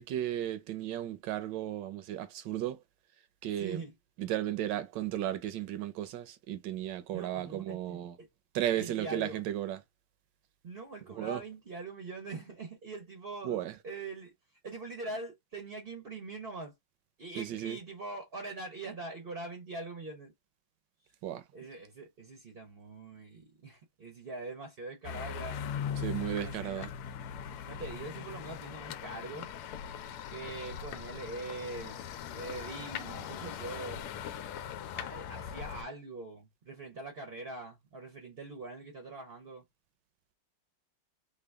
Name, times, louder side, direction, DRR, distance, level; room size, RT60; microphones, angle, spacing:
voice 1, 0.0-2.8 3.4-3.8 4.2-8.2 8.5-9.8 11.1-11.4 13.4-13.8 17.4-17.8 21.2-21.4 26.0-26.9, right 12 dB, 70° right, 1.1 m, -34 dB
voice 2, 3.6-3.9 7.1-8.3 8.8-9.4 10.6-14.3 14.6-16.8 17.2-20.3 21.5-25.6 26.4-26.9 27.4-29.5 30.3-34.0 34.9-39.7, right 3 dB, 50° right, 0.6 m, -43 dB
sound 1, 25.0-35.8, left 8 dB, 90° left, 1.5 m, -40 dB
3.9 x 2.2 x 3.3 m
omnidirectional pair, 2.4 m